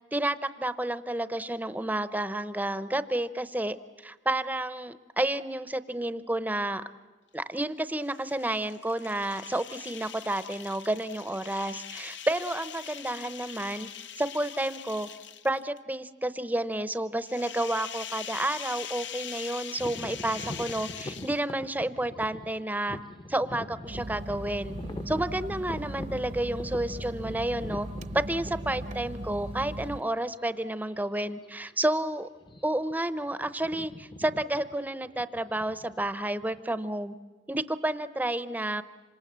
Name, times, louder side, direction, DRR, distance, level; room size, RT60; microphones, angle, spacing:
voice 1, 0.1-3.8 4.0-6.8 7.3-13.9 14.2-15.1 15.4-23.0 23.3-24.8 25.1-27.9 28.1-32.3 32.6-37.1 37.5-38.8, right 1 dB, 10° right, 13 dB, 0.7 m, -30 dB
sound 1, 8.0-15.8 17.2-21.7, left 9 dB, 85° left, 1.0 m, -42 dB
sound 2, 19.8-29.6 30.2-30.3 31.0-31.2 31.5-31.7 32.4-32.9 33.2-36.6, left 1 dB, 25° left, 0.8 m, -43 dB
sound 3, 23.9-30.0, right 1 dB, 40° right, 0.8 m, -38 dB
27.0 x 26.0 x 7.5 m, 1.3 s
head